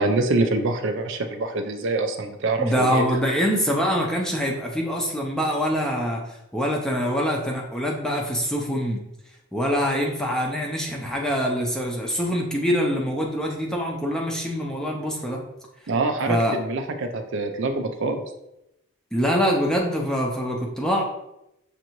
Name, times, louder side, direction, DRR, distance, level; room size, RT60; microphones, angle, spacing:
voice 1, 0.0-3.1 15.9-18.2, right 2 dB, 55° right, 6 dB, 0.4 m, -25 dB
voice 2, 2.6-6.2 6.5-9.0 9.5-15.4 16.3-16.6 19.1-21.0, equal, 5° left, -1 dB, 0.5 m, -24 dB
6.6 x 2.6 x 3.0 m, 0.87 s
head